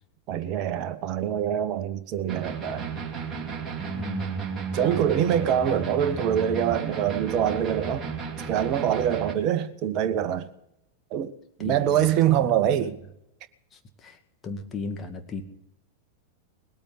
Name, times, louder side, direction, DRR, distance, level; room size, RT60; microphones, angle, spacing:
voice 1, 0.3-2.9 4.7-8.1 8.5-10.5 11.1-13.0, right 10 dB, 40° right, 1.3 m, -25 dB
sound 1, 2.3-9.3, right 5 dB, 20° right, 2.7 m, -33 dB
voice 2, 3.9-4.4 4.8-5.0 5.4-5.5 11.7-12.5 14.0-14.1 14.4-15.4, left 3 dB, 25° left, 2.1 m, -36 dB
20.5 x 8.9 x 7.6 m
figure-of-eight pair, 90°, 0 cm